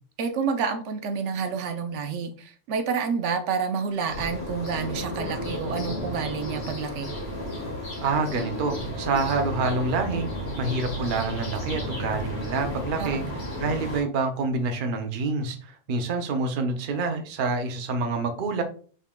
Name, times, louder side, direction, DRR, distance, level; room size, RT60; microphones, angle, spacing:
voice 1, 0.2-7.1 13.0-13.4, right 5 dB, 80° right, 7 dB, 0.9 m, -29 dB
sound 1, 4.1-14.0, equal, 65° left, 1.7 m, -33 dB
voice 2, 8.0-10.3 10.6-13.2 13.6-18.6, right 3 dB, 55° right, 5 dB, 0.7 m, -27 dB
5.4 x 3.6 x 2.2 m, 0.42 s
omnidirectional pair, 1.2 m